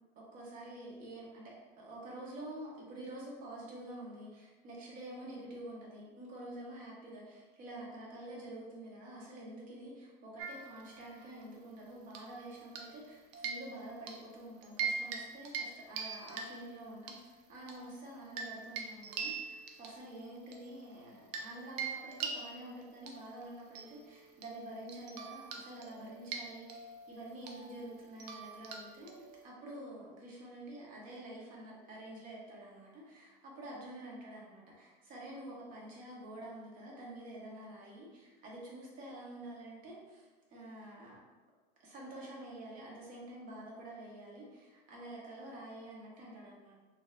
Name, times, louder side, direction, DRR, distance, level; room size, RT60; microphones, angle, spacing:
voice 1, 0.3-41.2 41.8-46.8, right 1 dB, 40° right, -4 dB, 1.0 m, -48 dB
sound 1, 10.4-11.4 12.1-13.1 13.3-14.2 14.6-15.2 15.5-15.7 16.0-17.2 17.7-21.5 21.8-29.4, right 5 dB, 75° right, 0.5 m, -43 dB
3.8 x 2.5 x 2.4 m, 1.3 s
cardioid pair, 155°, 21 cm